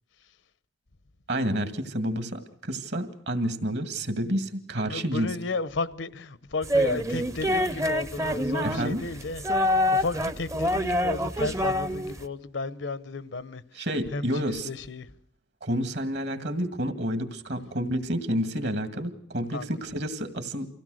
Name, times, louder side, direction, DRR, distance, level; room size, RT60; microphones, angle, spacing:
voice 1, 1.3-5.3 8.6-9.0 13.8-14.7 15.6-20.7, equal, 60° right, 2.1 m, -29 dB
voice 2, 4.9-15.2 19.5-19.8, left 3 dB, 75° left, 0.9 m, -34 dB
sound 1, 6.6-12.3, equal, 15° right, 0.7 m, -26 dB
25.0 x 16.0 x 6.4 m
head